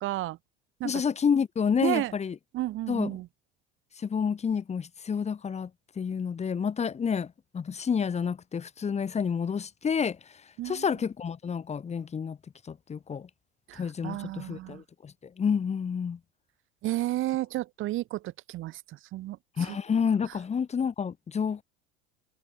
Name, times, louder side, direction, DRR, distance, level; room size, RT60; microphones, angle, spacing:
voice 1, 0.0-0.4 0.8-0.9 1.8-2.1 2.5-3.2 10.6-10.8 13.7-14.8 16.8-18.2 18.5-18.8 19.1-19.4, right 16 dB, 40° right, 1.1 m, -31 dB
voice 2, 0.8-2.4 2.9-3.2 4.0-5.7 6.0-10.3 10.6-12.4 12.6-13.3 13.8-16.2 19.6-21.6, left 6 dB, 20° left, 1.2 m, -29 dB
figure-of-eight pair, 70°, 31 cm